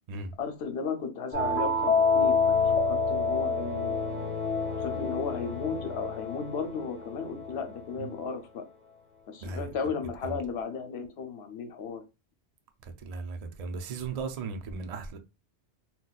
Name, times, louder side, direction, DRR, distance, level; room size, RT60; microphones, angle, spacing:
voice 1, 0.4-4.0 4.8-8.7 9.3-12.0, left 5 dB, 70° left, 0.9 m, -35 dB
sound 1, 1.3-7.8, left 4 dB, 40° left, 1.1 m, -28 dB
voice 2, 13.0-15.2, right 4 dB, 60° right, 0.4 m, -36 dB
3.9 x 2.3 x 2.3 m
omnidirectional pair, 1.2 m